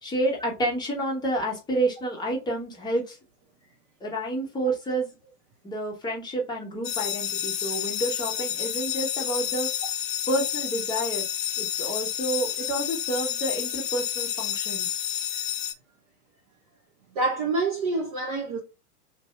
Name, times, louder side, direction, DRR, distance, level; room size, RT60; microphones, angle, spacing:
voice 1, 0.0-3.2 4.0-5.3 5.6-9.7 10.3-11.2 11.6-15.0, right 1 dB, 10° left, 0.9 m, -29 dB
sound 1, 6.8-15.7, left 11 dB, 35° left, 0.4 m, -30 dB
voice 2, 17.1-18.6, right 3 dB, 25° right, 0.5 m, -26 dB
3.3 x 2.6 x 4.2 m
figure-of-eight pair, 105°, 46 cm